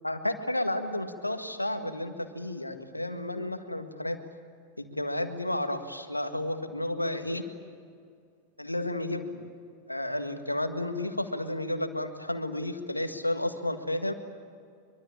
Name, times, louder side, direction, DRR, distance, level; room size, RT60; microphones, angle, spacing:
voice 1, 0.0-4.2 4.8-7.4 8.6-9.4 9.9-14.1, left 1 dB, 85° left, 8 dB, 1.8 m, -32 dB
24.0 x 24.0 x 8.8 m, 2.3 s
figure-of-eight pair, 90°, 0 cm